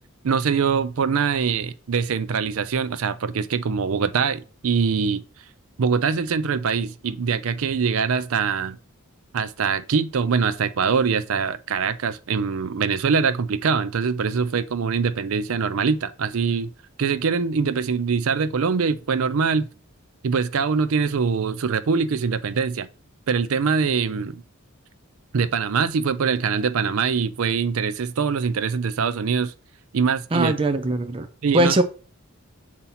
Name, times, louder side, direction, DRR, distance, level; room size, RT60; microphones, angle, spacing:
voice 1, 0.2-5.2 5.8-8.8 9.3-16.7 17.0-19.7 20.2-22.9 23.3-24.4 25.3-29.5 29.9-30.5 31.4-31.8, right 5 dB, 70° right, 0.5 m, -23 dB
voice 2, 30.3-31.3 31.5-31.8, right 1 dB, 25° right, 0.5 m, -20 dB
6.8 x 2.9 x 5.7 m
head